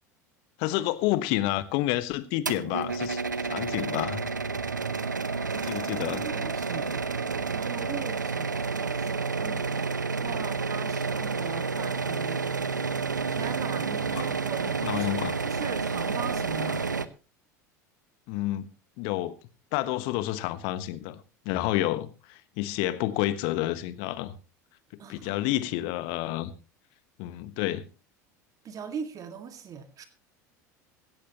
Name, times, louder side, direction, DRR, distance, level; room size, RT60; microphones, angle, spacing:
voice 1, 0.6-4.2 5.6-6.3 14.1-14.3 14.8-15.3 18.3-18.7 19.0-19.3 19.7-21.2 21.4-24.3 25.1-26.5 27.2-27.8, left 15 dB, 55° left, 1.3 m, -29 dB
sound 1, 2.5-17.1, right 4 dB, 90° right, 0.7 m, -30 dB
voice 2, 5.5-7.0 7.5-12.4 13.3-15.1 15.5-16.9 25.0-25.3 28.6-30.1, right 6 dB, 35° right, 2.0 m, -41 dB
16.5 x 14.5 x 3.0 m
figure-of-eight pair, 75°, 10 cm